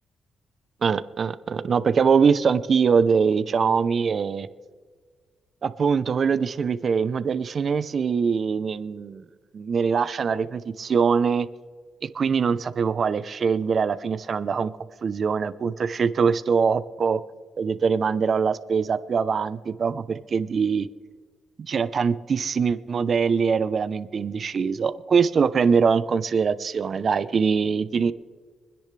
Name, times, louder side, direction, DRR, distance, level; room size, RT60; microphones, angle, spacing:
voice 1, 0.8-4.5 5.6-9.2 9.5-11.5 12.1-14.7 15.0-17.2 17.6-20.9 21.6-28.1, right 6 dB, 50° right, 14 dB, 0.7 m, -23 dB
26.0 x 10.0 x 3.3 m, 1.6 s
cardioid pair, 90°, 0 cm